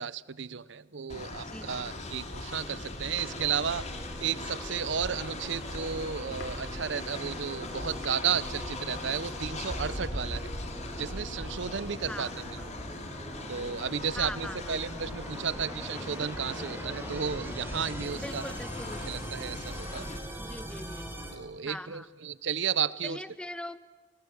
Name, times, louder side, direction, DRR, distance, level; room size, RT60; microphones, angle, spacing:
voice 1, 0.0-3.9 4.2-10.5 11.0-12.6 13.5-18.5 19.0-20.1 21.3-23.2, right 7 dB, 65° right, 18 dB, 0.8 m, -33 dB
Train, 1.1-20.2, left 1 dB, 35° left, 3.3 m, -39 dB
voice 2, 1.5-1.8 12.1-12.6 14.1-14.8 18.1-19.0 20.4-21.1 21.6-22.1 23.0-23.8, left 1 dB, 5° left, 12 dB, 1.2 m, -41 dB
sound 1, 3.2-7.5 7.8-8.2, left 2 dB, 75° left, 7.1 m, -52 dB
sound 2, 3.2-21.3, equal, 10° right, 4.8 m, -43 dB
30.0 x 23.0 x 8.0 m, 1.4 s
head